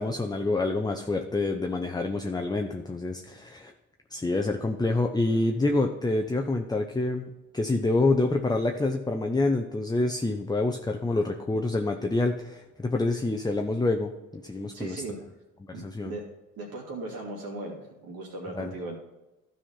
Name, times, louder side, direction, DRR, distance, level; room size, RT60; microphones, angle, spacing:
voice 1, 0.0-3.7 4.1-15.0 15.8-16.1 18.5-18.7, left 2 dB, 10° left, 4 dB, 0.7 m, -27 dB
voice 2, 14.7-15.2 15.7-16.2 16.6-19.0, right 2 dB, 65° right, -1 dB, 2.7 m, -38 dB
12.5 x 4.3 x 5.7 m, 1.0 s
hypercardioid pair, 50°, 37 cm